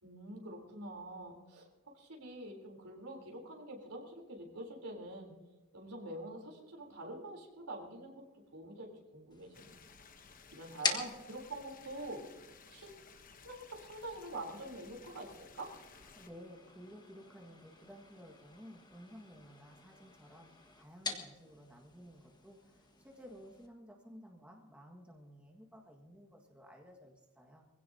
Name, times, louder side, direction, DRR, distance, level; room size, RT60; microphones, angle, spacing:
voice 1, 0.0-1.7 1.9-5.3 5.7-9.8 10.5-12.2 12.7-12.9 13.4-15.7, right 1 dB, 80° right, 1 dB, 3.7 m, -46 dB
sound 1, 9.3-23.7, left 4 dB, 20° left, 1.5 m, -46 dB
sound 2, 9.5-16.3, left 5 dB, 40° left, 1.0 m, -58 dB
voice 2, 16.1-20.5 20.8-27.7, equal, 5° right, 0 dB, 1.7 m, -54 dB
24.5 x 16.5 x 2.8 m, 1.2 s
head